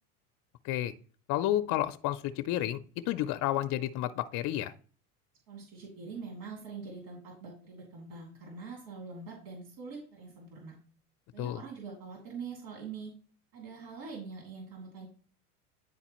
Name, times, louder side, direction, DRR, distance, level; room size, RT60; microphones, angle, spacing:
voice 1, 1.3-2.8 3.1-4.7 11.4-11.6, left 13 dB, 40° left, 10 dB, 0.6 m, -31 dB
voice 2, 5.5-10.8 11.3-13.1 13.5-15.1, right 4 dB, 65° right, -1 dB, 2.8 m, -44 dB
10.0 x 4.0 x 3.0 m, 0.42 s
hypercardioid pair, 80°, 45 cm